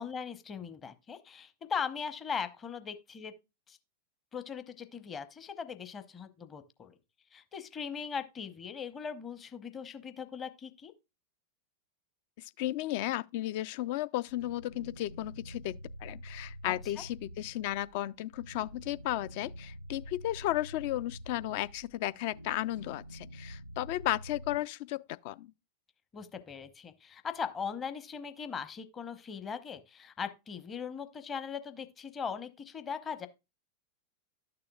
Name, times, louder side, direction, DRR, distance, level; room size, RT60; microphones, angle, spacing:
voice 1, 0.0-3.3 3.7-3.8 4.3-6.9 7.3-10.9 16.6-16.7 26.1-33.3, left 6 dB, 20° left, 0.8 m, -39 dB
voice 2, 12.4-25.0 25.2-25.5, left 15 dB, 50° left, 0.3 m, -34 dB
sound 1, 14.3-24.6, equal, 90° right, 0.3 m, -47 dB
12.0 x 6.8 x 2.3 m
figure-of-eight pair, 90°, 0 cm